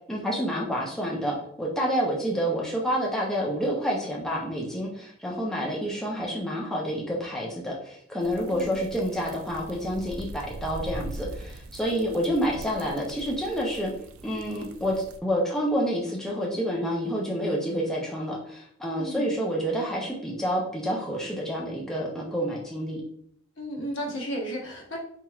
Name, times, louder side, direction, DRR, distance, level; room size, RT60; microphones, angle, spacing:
voice 1, 0.1-13.9 14.2-14.9 15.2-23.0, equal, ahead, -3 dB, 0.5 m, -28 dB
sound 1, 8.2-15.2, right 2 dB, 85° right, 0.4 m, -42 dB
voice 2, 19.0-19.3 23.6-25.0, equal, 65° left, -1 dB, 1.0 m, -33 dB
4.4 x 2.9 x 2.3 m, 0.67 s
head